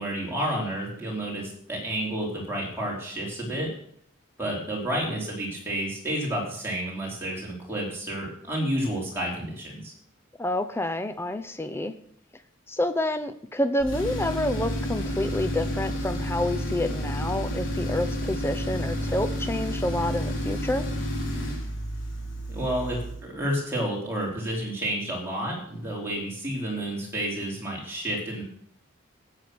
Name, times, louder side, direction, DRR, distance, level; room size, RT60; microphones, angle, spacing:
voice 1, 0.0-3.7 4.4-9.9 22.5-28.4, right 1 dB, 10° right, -3 dB, 4.1 m, -30 dB
voice 2, 10.4-11.9 12.7-20.9, left 1 dB, 10° left, 8 dB, 0.8 m, -28 dB
Tools, 13.8-23.3, equal, 70° left, 3.8 m, -30 dB
13.5 x 8.7 x 6.2 m, 0.64 s
head